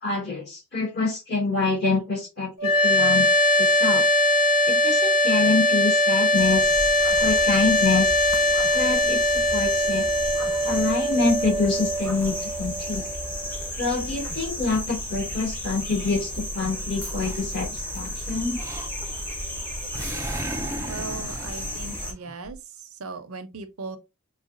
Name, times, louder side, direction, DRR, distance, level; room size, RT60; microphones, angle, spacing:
voice 1, 0.0-3.3 3.6-4.0 4.7-6.7 7.2-8.2 8.7-10.1 10.6-13.0 13.8-18.6, left 3 dB, 50° left, 2.3 m, -26 dB
sound 1, 2.6-13.7, left 1 dB, 90° left, 1.0 m, -21 dB
sound 2, 6.3-22.1, equal, 10° left, 0.8 m, -33 dB
Animal, 17.2-18.0 18.5-19.3 19.6-22.6, right 1 dB, 15° right, 0.3 m, -36 dB
voice 2, 20.9-22.6 23.0-24.0, right 3 dB, 85° right, 0.7 m, -37 dB
4.8 x 2.2 x 2.5 m
head